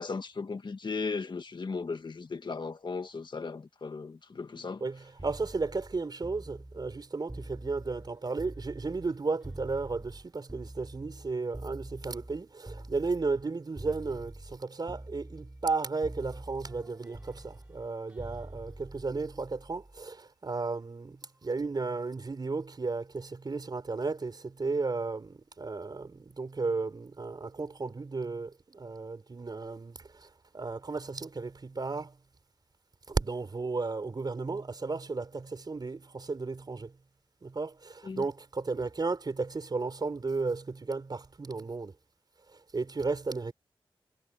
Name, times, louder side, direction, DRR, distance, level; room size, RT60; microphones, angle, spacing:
voice 1, 0.0-4.8 38.0-38.2, left 4 dB, 55° left, 1.7 m, -36 dB
voice 2, 4.8-30.3 30.5-32.2 33.1-37.0 37.4-41.9 42.5-43.5, right 3 dB, 45° right, 5.0 m, -34 dB
sound 1, 5.2-9.1 9.4-13.5 13.8-14.6 14.9-20.0 21.2-21.5, right 1 dB, 15° right, 6.2 m, -45 dB
wide cardioid pair, 95°, 9 cm